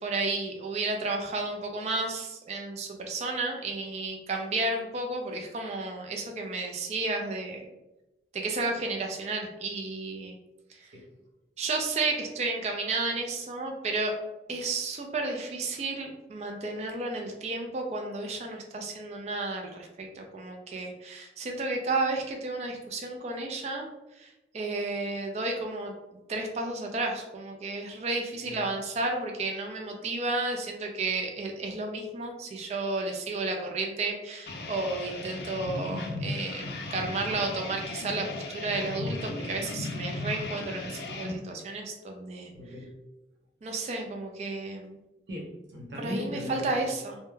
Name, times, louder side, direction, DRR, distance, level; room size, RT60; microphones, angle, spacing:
voice 1, 0.0-7.7 8.3-10.4 10.7-10.9 11.6-14.1 14.5-23.9 24.1-26.0 26.3-42.5 43.6-45.0 46.0-47.2, right 3 dB, 40° right, 2 dB, 0.3 m, -32 dB
sound 1, 34.5-41.3, left 2 dB, 65° left, 0.4 m, -36 dB
voice 2, 42.5-43.0 45.3-46.9, left 1 dB, 80° right, -2 dB, 0.6 m, -38 dB
2.2 x 2.0 x 3.0 m, 0.98 s
head